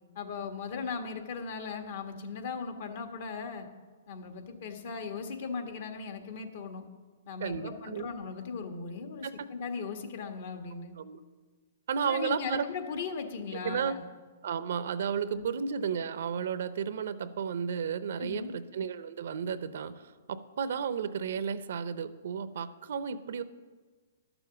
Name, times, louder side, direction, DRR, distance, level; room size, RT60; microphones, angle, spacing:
voice 1, 0.1-3.7 4.1-6.8 7.2-10.9 12.0-14.0 15.3-15.5 18.2-18.6, left 5 dB, 60° left, 5 dB, 1.5 m, -38 dB
voice 2, 7.4-8.1 9.2-9.3 11.0-11.2 11.9-12.7 13.6-14.0 14.4-23.4, right 7 dB, 70° right, 13 dB, 0.6 m, -33 dB
12.0 x 7.0 x 7.1 m, 1.4 s
hypercardioid pair, 135°, 0 cm